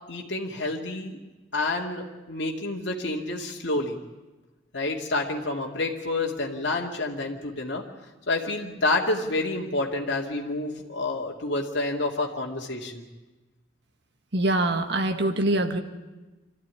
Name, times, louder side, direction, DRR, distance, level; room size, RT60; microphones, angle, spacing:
voice 1, 0.1-1.2 1.5-4.0 4.7-7.8 8.3-13.0, left 2 dB, 60° left, -1 dB, 2.4 m, -28 dB
voice 2, 14.3-15.8, right 1 dB, 60° right, 6 dB, 1.7 m, -24 dB
25.0 x 14.0 x 9.7 m, 1.1 s
head